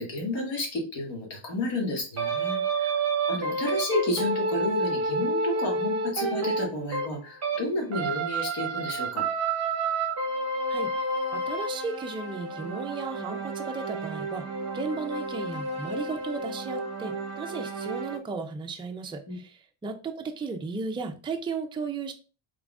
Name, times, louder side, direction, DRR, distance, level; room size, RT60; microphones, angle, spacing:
voice 1, 0.0-2.9 3.3-9.3 19.3-19.4, left 2 dB, 65° left, 1.7 m, -31 dB
sound 1, 2.2-7.6 7.9-18.2, right 3 dB, 30° right, 0.8 m, -30 dB
voice 2, 10.7-22.1, right 4 dB, 10° right, 0.3 m, -35 dB
3.7 x 3.5 x 2.3 m
cardioid pair, 115°, 48 cm